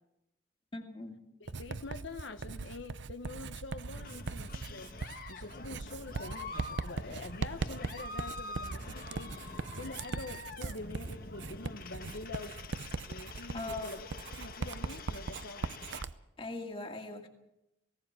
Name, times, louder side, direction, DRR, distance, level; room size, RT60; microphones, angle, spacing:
voice 1, 0.7-1.2 13.5-13.9 16.4-17.3, left 2 dB, 25° left, 3 dB, 2.3 m, -40 dB
voice 2, 1.4-4.9 5.3-9.4 9.8-12.6 13.1-14.1 14.4-15.7, left 2 dB, 75° left, 7 dB, 1.2 m, -45 dB
Writing, 1.5-16.1, right 3 dB, 70° right, 0.7 m, -40 dB
sound 1, 4.0-16.0, left 3 dB, 50° left, 1.4 m, -46 dB
19.0 x 17.5 x 7.7 m, 0.86 s
head